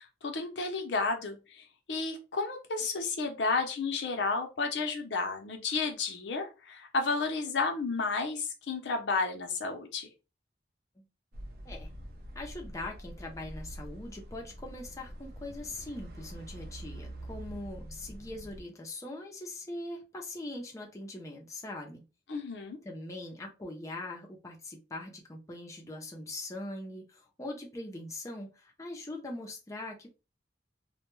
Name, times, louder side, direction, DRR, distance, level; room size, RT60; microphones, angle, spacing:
voice 1, 0.0-10.1 22.3-22.8, left 4 dB, 80° left, 4 dB, 0.6 m, -32 dB
sound 1, 11.3-18.6, right 1 dB, 60° right, 0.5 m, -45 dB
voice 2, 12.3-22.0 22.8-30.1, left 2 dB, 20° left, 0 dB, 0.5 m, -42 dB
2.1 x 2.1 x 3.0 m, 0.29 s
head